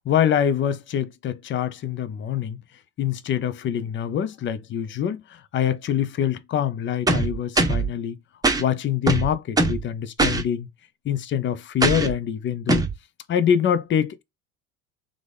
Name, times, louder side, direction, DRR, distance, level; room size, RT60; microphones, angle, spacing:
voice 1, 0.0-2.6 3.0-8.2 8.6-10.7 11.0-12.9 13.3-14.2, left 9 dB, 25° left, 0.6 m, -25 dB
sound 1, 7.1-7.9 8.4-8.6 9.1-9.8 10.2-10.4 11.8-12.1 12.7-12.9, right 2 dB, 10° right, 1.0 m, -21 dB
3.6 x 3.4 x 3.5 m
figure-of-eight pair, 70°, 43 cm